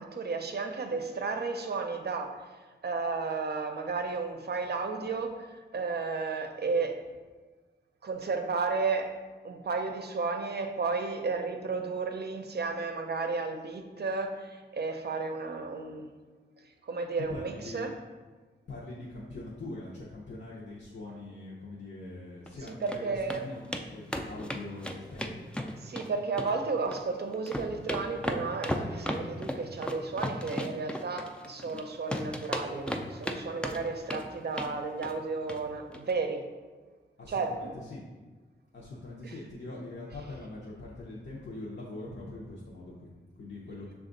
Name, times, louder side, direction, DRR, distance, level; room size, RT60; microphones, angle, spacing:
voice 1, 0.0-7.1 8.0-9.1 9.4-16.1 16.6-17.9 22.7-23.5 25.8-36.5 37.3-37.7 39.2-39.4, right 4 dB, 60° right, 5 dB, 0.5 m, -33 dB
voice 2, 17.3-17.9 18.7-25.5 37.2-38.0 38.7-43.9, left 2 dB, 65° left, -5 dB, 0.7 m, -43 dB
sound 1, 22.5-23.0 23.3-23.4 23.7-23.8 24.1-26.1 26.4-27.1 27.3-31.8 32.1-33.4 33.6-34.2 34.5-34.7 35.0-35.2 35.5-35.6 35.9-36.0, left 1 dB, 5° left, 0.3 m, -34 dB
5.9 x 2.4 x 3.8 m, 1.3 s
wide cardioid pair, 75°, 19 cm